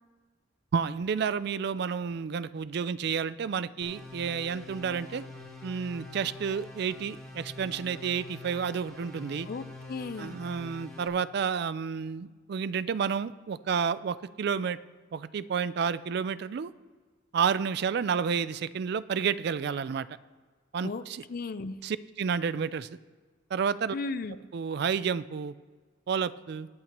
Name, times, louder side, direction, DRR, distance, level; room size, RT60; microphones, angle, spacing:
voice 1, 0.7-5.2 5.6-9.5 10.2-14.8 15.1-16.7 17.3-20.1 20.7-21.2 21.8-22.9 23.5-23.9 24.5-25.5 26.1-26.7, right 6 dB, 55° right, 16 dB, 0.3 m, -30 dB
sound 1, 3.8-11.1, left 2 dB, ahead, 2.1 m, -45 dB
voice 2, 9.5-10.4 20.8-21.8 23.9-24.4, left 3 dB, 50° left, 12 dB, 0.4 m, -36 dB
22.0 x 8.0 x 3.0 m, 1.5 s
head